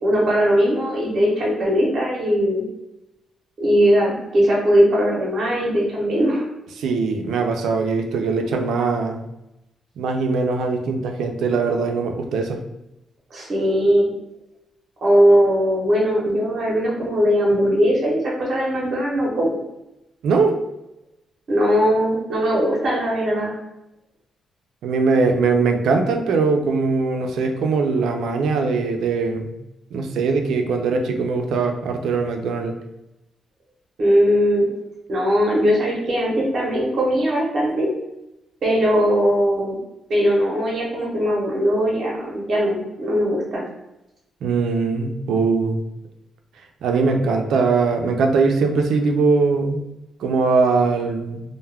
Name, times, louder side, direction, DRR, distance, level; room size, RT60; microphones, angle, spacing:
voice 1, 0.0-2.6 3.6-6.5 13.3-14.1 15.0-19.6 21.5-23.5 34.0-34.7 35.1-37.9 38.6-39.8 40.1-43.6, equal, 45° right, -4 dB, 0.7 m, -19 dB
voice 2, 6.7-9.2 10.0-12.6 20.2-20.6 24.8-29.5 29.9-32.7 44.4-45.8 46.8-49.8 50.2-51.4, right 4 dB, 80° right, 4 dB, 0.4 m, -21 dB
2.2 x 2.1 x 3.3 m, 0.90 s
wide cardioid pair, 160°, 0 cm